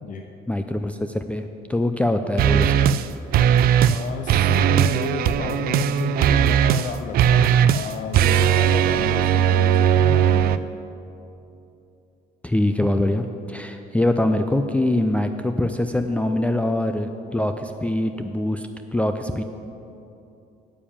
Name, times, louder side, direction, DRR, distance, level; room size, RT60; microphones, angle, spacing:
voice 1, 0.5-2.7 12.4-19.4, left 1 dB, 10° left, 7 dB, 0.4 m, -23 dB
sound 1, 2.4-3.1 3.3-4.0 4.3-10.6, right 9 dB, 60° right, 0.4 m, -18 dB
voice 2, 3.9-10.7, left 5 dB, 50° left, 5 dB, 0.7 m, -32 dB
9.0 x 7.1 x 8.6 m, 2.8 s
cardioid pair, 110°, 17 cm